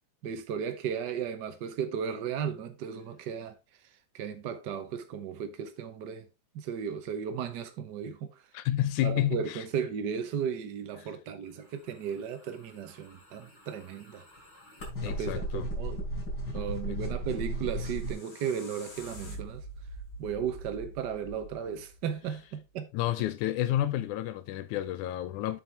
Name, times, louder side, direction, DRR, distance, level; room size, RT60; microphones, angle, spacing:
voice 1, 0.2-3.6 4.1-6.3 6.5-8.4 9.0-14.2 15.0-16.0 16.5-19.6 20.2-22.9, right 7 dB, 85° right, 0.9 m, -35 dB
voice 2, 8.5-9.6 11.0-11.1 15.0-15.7 16.9-17.0 22.9-25.6, left 13 dB, 90° left, 2.1 m, -30 dB
sound 1, 13.0-18.1, right 1 dB, 35° left, 4.6 m, -35 dB
sound 2, 17.8-22.7, right 1 dB, 70° left, 4.1 m, -46 dB
7.8 x 7.4 x 3.4 m
omnidirectional pair, 3.4 m